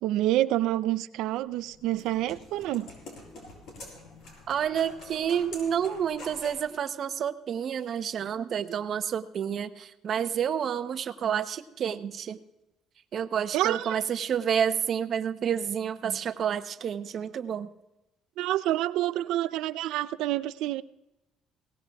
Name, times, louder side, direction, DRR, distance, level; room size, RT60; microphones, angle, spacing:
voice 1, 0.0-2.9 13.5-14.0 18.4-20.8, right 14 dB, 80° right, 15 dB, 0.5 m, -28 dB
sound 1, 1.4-6.7, left 2 dB, 65° left, 6.2 m, -46 dB
voice 2, 4.5-12.4 13.1-17.7, right 8 dB, 45° right, 10 dB, 0.8 m, -29 dB
21.5 x 18.5 x 2.4 m, 0.96 s
cardioid pair, 140°, 0 cm